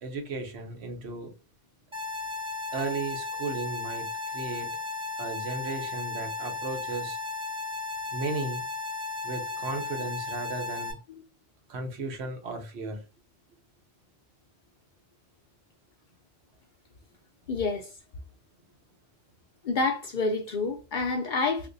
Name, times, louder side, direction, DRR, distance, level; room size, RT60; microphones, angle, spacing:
voice 1, 0.0-1.3 2.7-4.1 4.3-4.7 5.2-7.2 8.1-8.6 9.2-11.0 11.7-13.0, right 3 dB, 70° right, 1.0 m, -35 dB
sound 1, 1.9-10.9, left 4 dB, 5° right, 0.8 m, -35 dB
voice 2, 17.5-17.9 19.6-21.7, left 3 dB, 55° left, 0.6 m, -28 dB
3.6 x 2.5 x 2.5 m
omnidirectional pair, 1.1 m